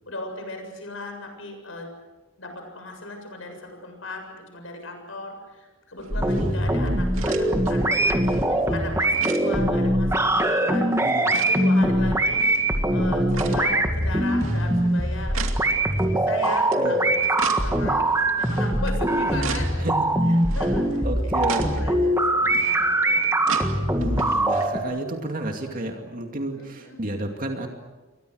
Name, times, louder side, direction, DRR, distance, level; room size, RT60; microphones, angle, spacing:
voice 1, 0.1-1.9 2.4-8.3 8.7-10.9 11.4-12.5 12.9-15.4 16.2-18.1 18.4-19.9 20.3-23.4 24.6-24.9 26.5-27.0, left 2 dB, 75° left, 4 dB, 7.3 m, -37 dB
sound 1, 6.0-24.7, right 4 dB, 90° right, 2.5 m, -39 dB
sound 2, 6.1-24.8, right 1 dB, 15° right, 2.2 m, -22 dB
voice 2, 6.2-6.8 11.0-11.4 16.8-17.0 19.8-20.1 21.0-21.9 23.9-27.7, right 1 dB, 45° right, 3 dB, 2.5 m, -31 dB
30.0 x 23.0 x 6.5 m, 1.2 s
head